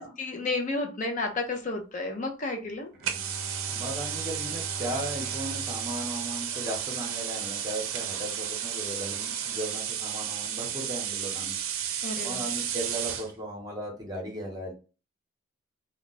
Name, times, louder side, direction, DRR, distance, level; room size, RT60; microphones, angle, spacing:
voice 1, 0.0-2.9 12.0-12.4, left 2 dB, 35° left, 3 dB, 0.5 m, -32 dB
Bowed string instrument, 2.9-7.4, equal, 40° right, 0.8 m, -43 dB
sound 1, 3.0-13.3, right 9 dB, 75° right, 0.5 m, -33 dB
voice 2, 3.6-11.5 11.8-14.7, right 1 dB, 20° right, 0 dB, 0.9 m, -36 dB
2.3 x 2.3 x 3.9 m, 0.35 s
head